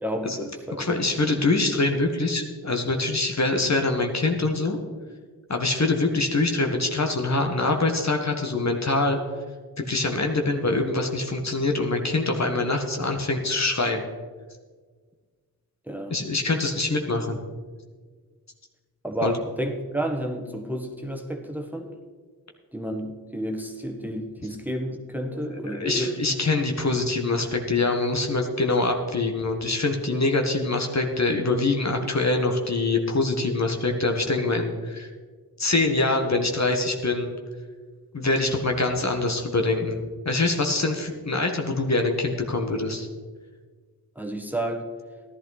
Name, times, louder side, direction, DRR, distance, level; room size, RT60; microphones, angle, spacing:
voice 1, 0.0-0.9 15.9-16.2 19.0-21.9 22.7-26.4 44.1-44.8, right 1 dB, 5° right, 3 dB, 1.5 m, -31 dB
voice 2, 0.7-4.8 5.5-9.2 9.8-14.1 16.1-17.4 19.2-19.3 25.3-35.1 35.6-37.3 38.1-43.1, left 2 dB, 45° left, 4 dB, 1.5 m, -24 dB
14.5 x 11.5 x 4.1 m, 1.5 s
cardioid pair, 50°, 37 cm